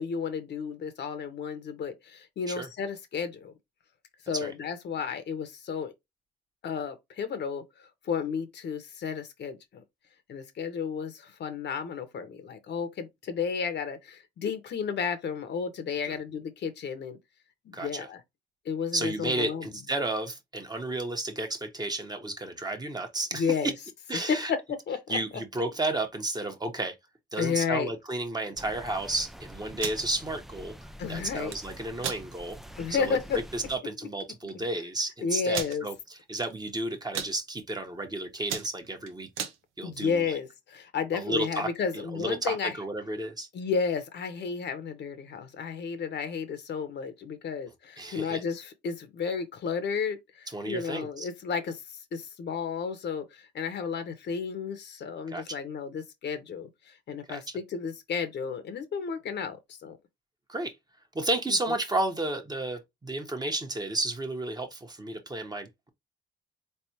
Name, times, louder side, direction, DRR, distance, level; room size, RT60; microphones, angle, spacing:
voice 1, 0.0-3.5 4.3-5.9 6.6-9.8 10.3-17.2 17.6-18.2 18.6-19.7 23.3-23.7 24.1-25.2 27.4-27.9 31.0-31.5 32.8-33.4 34.4-34.6 35.2-35.9 39.8-42.7 43.5-51.8 52.1-60.0, left 6 dB, 60° left, 1.1 m, -32 dB
voice 2, 17.7-18.1 18.9-23.5 24.1-24.5 25.1-26.9 27.3-30.7 31.1-32.6 33.0-33.2 33.5-39.4 39.8-40.2 41.1-41.7 41.9-43.5 48.0-48.4 50.5-51.3 55.3-55.4 57.3-57.6 60.5-60.7 61.1-65.9, right 2 dB, 20° right, 1.2 m, -32 dB
sound 1, 28.6-33.8, equal, ahead, 0.4 m, -46 dB
sound 2, 29.7-30.0 31.3-31.6 32.0-32.2 32.7-32.8 33.2-33.4 34.2-34.3 34.5-34.6 35.5-35.8 36.4-36.7 37.0-37.3 37.9-38.1 38.4-39.6, right 8 dB, 85° right, 1.0 m, -34 dB
4.1 x 3.4 x 2.9 m
cardioid pair, 90°, 20 cm